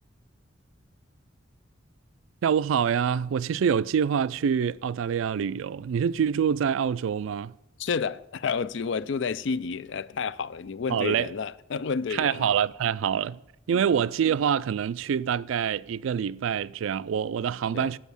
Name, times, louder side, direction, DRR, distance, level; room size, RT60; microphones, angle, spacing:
voice 1, 2.4-7.5 10.9-11.3 12.1-13.4 13.7-18.0, right 7 dB, 85° right, 0.3 m, -26 dB
voice 2, 7.8-12.5 13.7-13.8 17.7-17.9, left 5 dB, 65° left, 0.4 m, -30 dB
8.3 x 8.0 x 6.9 m
head